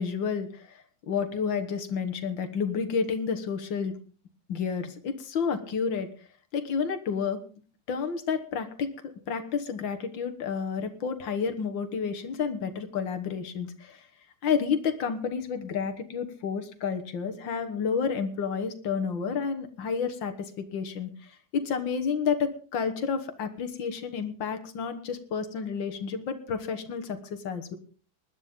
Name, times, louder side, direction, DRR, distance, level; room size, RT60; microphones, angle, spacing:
voice 1, 0.0-3.9 4.5-6.1 6.5-7.4 7.9-14.1 14.4-27.8, left 6 dB, 85° left, 8 dB, 2.2 m, -30 dB
20.0 x 12.0 x 3.7 m, 0.39 s
omnidirectional pair, 2.0 m